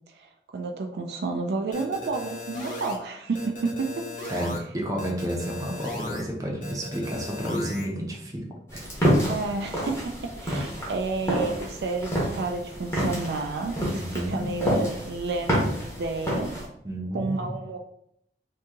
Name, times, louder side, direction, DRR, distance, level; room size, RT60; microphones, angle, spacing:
voice 1, 0.1-4.1 9.3-16.5 17.1-17.8, right 3 dB, 70° right, 4 dB, 0.4 m, -31 dB
sound 1, 1.7-3.0 3.3-4.6 5.0-6.2 6.6-7.9, left 2 dB, 45° left, 0.8 m, -37 dB
voice 2, 4.3-8.4 8.7-8.8 13.9-14.5 16.8-17.6, equal, 20° right, -1 dB, 0.6 m, -31 dB
sound 2, 8.7-16.6, equal, 15° left, 0.9 m, -28 dB
2.8 x 2.7 x 3.5 m, 0.72 s
head